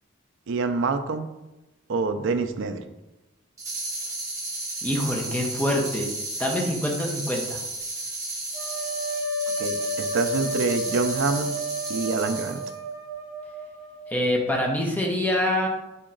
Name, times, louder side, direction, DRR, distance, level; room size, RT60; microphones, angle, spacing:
voice 1, 0.5-1.3 1.9-2.8 9.6-11.5 11.9-12.6, right 4 dB, 65° right, 9 dB, 0.4 m, -26 dB
sound 1, 3.6-12.7, right 2 dB, 15° right, 1.2 m, -33 dB
voice 2, 4.8-6.1 6.4-7.6 14.1-15.7, left 1 dB, 10° left, -1 dB, 0.8 m, -25 dB
sound 2, 8.5-14.4, right 1 dB, 30° left, 1.1 m, -32 dB
4.3 x 2.9 x 3.8 m, 1.0 s
head